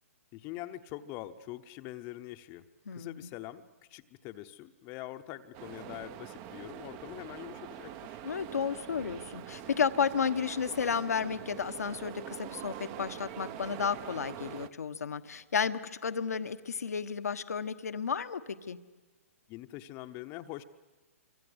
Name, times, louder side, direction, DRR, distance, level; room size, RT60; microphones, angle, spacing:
voice 1, 0.3-8.2 19.5-20.6, left 15 dB, 25° left, 9 dB, 0.9 m, -44 dB
voice 2, 2.9-3.3 8.2-18.4 18.7-18.8, left 6 dB, 85° left, 11 dB, 1.3 m, -32 dB
sound 1, 5.5-14.7, right 11 dB, 30° right, 0.8 m, -44 dB
26.5 x 25.0 x 8.0 m, 1.2 s
hypercardioid pair, 150°, 8 cm